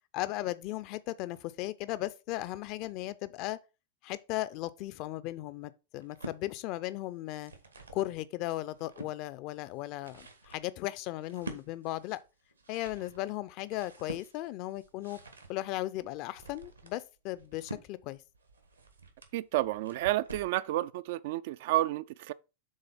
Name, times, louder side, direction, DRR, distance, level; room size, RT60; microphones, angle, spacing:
voice 1, 0.1-3.6 4.0-7.5 7.9-12.2 12.7-15.2 15.5-18.2, left 16 dB, 40° left, 0.5 m, -36 dB
sound 1, 6.0-6.4 7.2-8.1 8.5-9.2 9.8-20.6, right 1 dB, 80° right, 1.4 m, -48 dB
voice 2, 19.3-22.3, right 16 dB, 50° right, 0.4 m, -30 dB
6.5 x 4.0 x 5.8 m
figure-of-eight pair, 90°, 0 cm